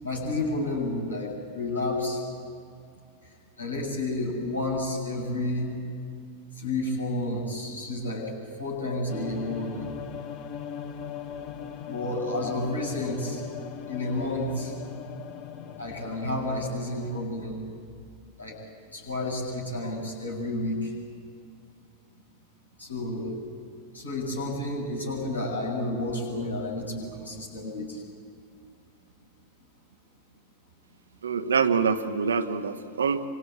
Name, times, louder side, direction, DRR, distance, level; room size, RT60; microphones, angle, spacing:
voice 1, 0.0-2.2 3.6-5.8 6.6-8.3 8.6-9.9 11.9-13.4 13.9-14.7 15.8-17.6 18.4-18.6 18.9-20.9 22.8-23.4 23.9-28.0, left 2 dB, 80° left, -1 dB, 8.0 m, -30 dB
sound 1, 9.1-17.3, left 8 dB, 40° left, 1.7 m, -40 dB
voice 2, 31.2-33.2, right 5 dB, 70° right, 8 dB, 1.5 m, -25 dB
27.0 x 25.5 x 8.6 m, 2.3 s
figure-of-eight pair, 90°, 0 cm